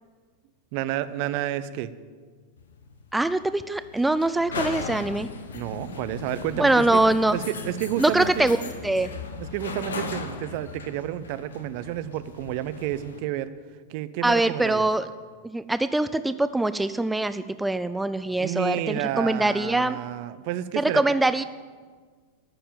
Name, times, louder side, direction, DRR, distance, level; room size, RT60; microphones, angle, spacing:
voice 1, 0.7-1.9 5.5-7.0 7.3-8.5 9.4-13.5 13.9-14.9 18.4-21.0, right 13 dB, 45° right, 14 dB, 0.6 m, -30 dB
sound 1, 2.6-13.2, left 4 dB, 65° left, 1.1 m, -37 dB
voice 2, 3.1-5.3 6.6-7.4 8.0-8.6 8.8-9.1 14.2-15.1 15.4-20.0 20.8-21.4, right 2 dB, 5° right, 13 dB, 0.4 m, -23 dB
13.0 x 6.8 x 9.1 m, 1.5 s
figure-of-eight pair, 90°, 0 cm